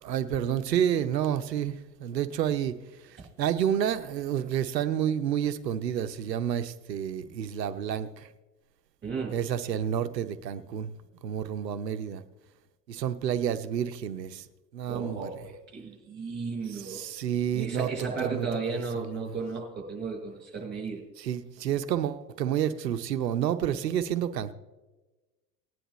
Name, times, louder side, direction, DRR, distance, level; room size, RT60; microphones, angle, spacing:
voice 1, 0.0-2.8 3.0-8.3 9.3-10.9 11.2-12.2 12.9-14.5 14.7-15.3 16.7-18.5 19.0-19.3 21.2-24.5, right 9 dB, 80° right, 0.8 m, -29 dB
voice 2, 9.0-9.3 14.9-17.0 17.5-21.0, right 4 dB, 20° right, 5.1 m, -34 dB
19.0 x 10.0 x 3.1 m
figure-of-eight pair, 80°, 49 cm